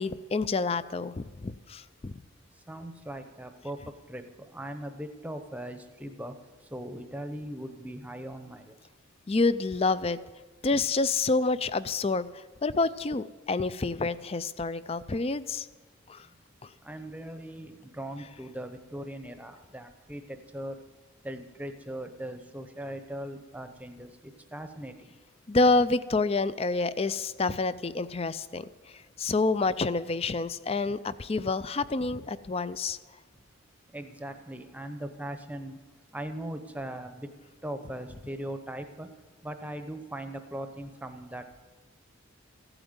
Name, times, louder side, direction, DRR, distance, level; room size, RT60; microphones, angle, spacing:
voice 1, 0.0-2.1 9.3-10.2 10.6-12.3 12.6-15.7 16.1-16.2 25.5-28.7 29.2-33.0, left 3 dB, 30° left, 15 dB, 0.4 m, -28 dB
voice 2, 2.7-3.8 4.1-6.3 6.7-8.8 16.8-20.8 21.2-25.1 33.9-35.8 36.1-37.3 37.6-39.1 39.4-41.6, right 1 dB, 5° right, 7 dB, 0.8 m, -39 dB
15.0 x 8.9 x 8.0 m, 1.3 s
head